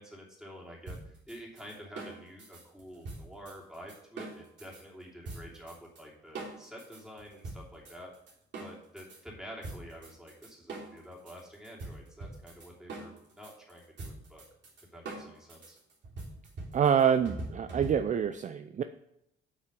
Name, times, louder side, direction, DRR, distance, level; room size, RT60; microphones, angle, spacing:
voice 1, 0.0-8.1 8.6-14.4 14.9-15.8, equal, 5° right, -3 dB, 2.9 m, -48 dB
sound 1, 0.9-4.8 5.2-6.0 6.3-9.2 9.6-18.3, right 2 dB, 65° right, 3.4 m, -43 dB
voice 2, 16.7-18.8, right 8 dB, 40° right, 10 dB, 0.4 m, -26 dB
8.3 x 5.6 x 5.2 m, 0.79 s
cardioid pair, 90°, 20 cm